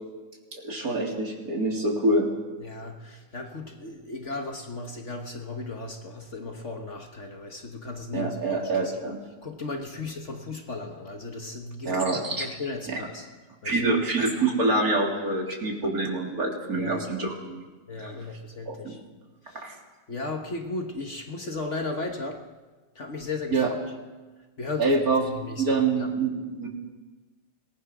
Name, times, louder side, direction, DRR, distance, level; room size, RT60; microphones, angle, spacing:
voice 1, 0.5-2.3 8.1-9.2 11.8-12.5 12.9-13.1 13.6-17.6 18.0-18.1 18.7-18.9 19.5-19.7 23.5-23.7 24.8-25.2 25.6-26.7, right 2 dB, 55° right, -1 dB, 3.7 m, -26 dB
voice 2, 2.6-8.9 9.4-13.2 13.6-13.8 16.8-17.3 17.9-19.0 19.5-19.6 20.1-22.4 22.9-23.6 24.6-26.1, left 3 dB, 45° left, 4 dB, 1.6 m, -36 dB
26.0 x 19.5 x 6.1 m, 1.3 s
omnidirectional pair, 1.9 m